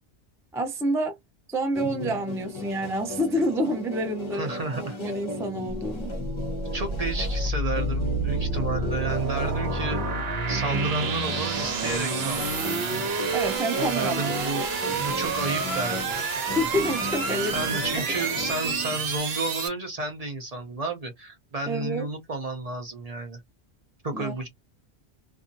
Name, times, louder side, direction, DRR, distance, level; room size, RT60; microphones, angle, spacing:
voice 1, 0.5-1.1 1.5-4.5 4.8-6.1 13.3-14.2 16.3-18.0 21.7-22.1 24.1-24.3, equal, 5° right, 0.4 m, -28 dB
sound 1, 1.7-19.2, equal, 30° left, 0.7 m, -36 dB
voice 2, 4.3-5.0 6.7-10.0 10.5-13.1 13.8-14.7 15.0-16.1 16.5-16.7 17.4-23.4 24.0-24.5, right 2 dB, 40° right, 0.7 m, -32 dB
sound 2, 5.7-19.7, right 3 dB, 65° right, 1.0 m, -29 dB
2.7 x 2.3 x 2.5 m
omnidirectional pair, 1.1 m